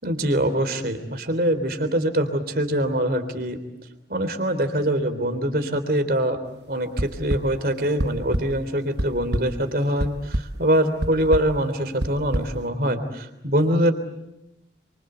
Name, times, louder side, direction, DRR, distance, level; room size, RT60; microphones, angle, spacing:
voice 1, 0.0-3.6 4.1-13.9, right 1 dB, 55° right, 8 dB, 3.5 m, -24 dB
sound 1, 7.0-7.4 8.0-8.4 8.8-9.4 10.0-10.4 11.0-11.4 12.0-12.4, right 1 dB, 70° right, 1.3 m, -24 dB
29.0 x 25.0 x 8.1 m, 0.88 s
head